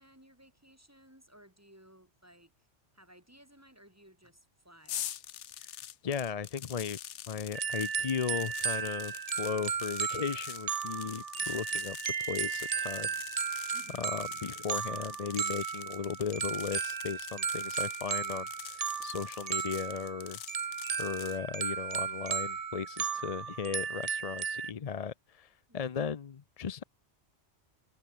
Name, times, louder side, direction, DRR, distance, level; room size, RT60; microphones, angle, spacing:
voice 1, 0.0-2.7 2.9-5.1 13.7-14.2 25.7-26.1, right 1 dB, 15° right, 3.5 m, -59 dB
sound 1, 4.9-21.4, left 10 dB, 80° left, 1.1 m, -45 dB
voice 2, 6.0-7.0 7.3-13.1 14.0-20.4 21.0-26.8, left 6 dB, 40° left, 0.6 m, -36 dB
sound 2, 7.5-24.7, right 6 dB, 40° right, 0.6 m, -35 dB
omnidirectional pair, 1.2 m